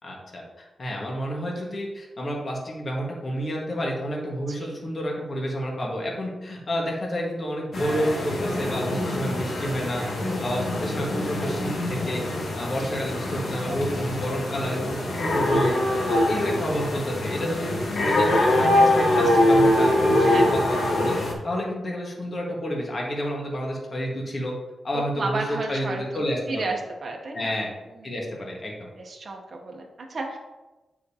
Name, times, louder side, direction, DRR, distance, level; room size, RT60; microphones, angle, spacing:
voice 1, 0.0-10.0 10.4-12.2 12.5-15.7 16.1-21.2 21.4-24.5 24.8-25.4 25.7-26.6 27.3-27.7 28.0-28.7, equal, 40° left, -2 dB, 1.5 m, -29 dB
Czech Bohemia Deer Close, 7.7-21.3, left 1 dB, 65° left, 1.4 m, -23 dB
voice 2, 9.9-10.3 12.8-12.9 15.8-15.9 20.2-20.5 24.9-27.5 28.0-28.1 28.9-30.4, right 3 dB, 45° right, 1 dB, 0.8 m, -33 dB
9.1 x 5.0 x 2.8 m, 1.1 s
wide cardioid pair, 135°, 0 cm